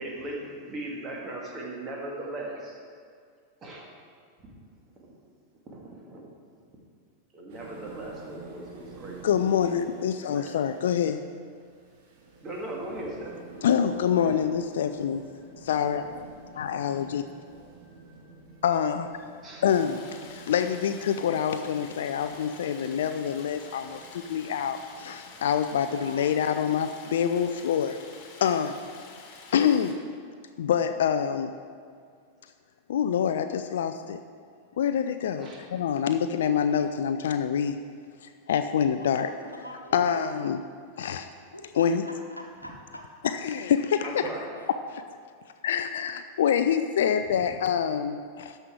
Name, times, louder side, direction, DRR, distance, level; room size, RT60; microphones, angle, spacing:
voice 1, 0.0-2.8 3.6-3.9 5.0-5.1 5.7-6.2 7.3-9.5 10.3-10.5 12.4-13.4 16.5-16.6 19.4-19.6 35.4-35.6 44.0-44.6, right 1 dB, 25° right, -1 dB, 2.0 m, -38 dB
sound 1, 7.5-26.1, right 3 dB, 50° right, 1.3 m, -49 dB
voice 2, 9.2-11.2 13.6-15.2 15.6-16.0 16.5-17.2 18.6-19.1 19.6-20.0 20.3-28.0 28.4-28.8 29.5-30.0 30.6-31.5 32.9-34.2 34.8-37.8 38.2-39.3 39.9-40.6 41.0-41.3 41.8-42.0 43.2-44.3 44.9-45.0 45.6-48.6, left 8 dB, 60° left, 9 dB, 0.4 m, -26 dB
voice 3, 13.8-14.5 25.7-26.6 39.0-40.4 41.5-43.0 44.6-44.7, equal, 90° left, 1 dB, 1.1 m, -44 dB
Stream, 19.7-29.9, left 4 dB, 40° left, 1.6 m, -48 dB
13.0 x 5.5 x 4.7 m, 2.1 s
figure-of-eight pair, 90°, 0 cm